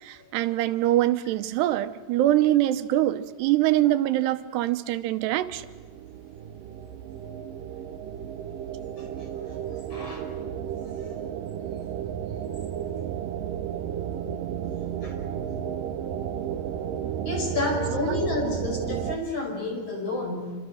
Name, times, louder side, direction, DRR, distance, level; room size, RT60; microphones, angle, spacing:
voice 1, 0.0-5.7 18.1-18.2, right 14 dB, 90° right, 3.0 m, -24 dB
sound 1, 5.4-19.2, right 9 dB, 70° right, 2.2 m, -33 dB
voice 2, 9.5-10.3 15.0-15.2 17.2-20.6, left 2 dB, 35° left, 6.3 m, -30 dB
27.5 x 26.0 x 6.4 m
omnidirectional pair, 4.7 m